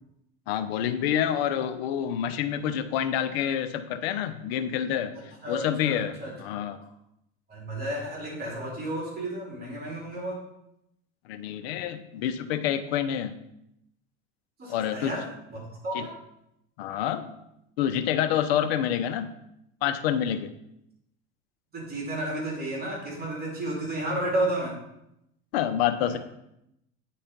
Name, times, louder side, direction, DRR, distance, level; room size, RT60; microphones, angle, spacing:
voice 1, 0.5-6.8 11.3-13.3 14.7-15.1 15.9-16.1 16.8-17.4 17.8-19.3 19.8-20.5 25.5-26.2, left 10 dB, 80° left, 10 dB, 0.8 m, -28 dB
voice 2, 5.4-6.3 7.5-10.4 14.6-15.2 15.5-16.1 21.7-24.8 26.1-26.2, right 1 dB, 30° right, -3 dB, 3.1 m, -32 dB
9.4 x 4.3 x 5.2 m, 0.82 s
supercardioid pair, 115°, 30 cm